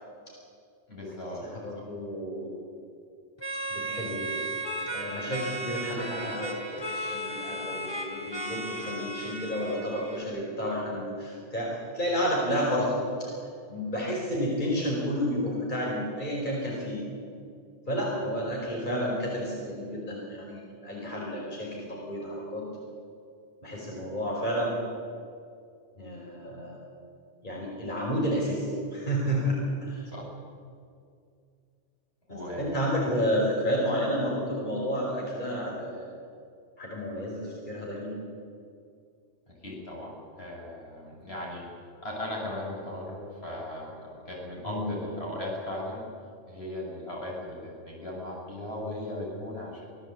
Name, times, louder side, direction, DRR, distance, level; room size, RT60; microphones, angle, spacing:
voice 1, 0.9-1.5 1.8-1.9 30.1-30.3 32.3-32.8 39.6-41.7 42.0-46.1 46.5-49.8, left 1 dB, 60° left, -3 dB, 7.5 m, -37 dB
voice 2, 1.4-2.5 3.7-4.5 4.8-13.3 13.7-17.0 17.9-22.7 23.6-24.8 26.0-26.8 27.4-30.1 32.3-36.0 36.8-38.2 44.6-45.0, equal, 40° left, -3 dB, 5.2 m, -31 dB
sound 1, 3.4-10.2, right 1 dB, 20° left, 2.9 m, -35 dB
26.0 x 17.0 x 8.6 m, 2.3 s
omnidirectional pair, 1.2 m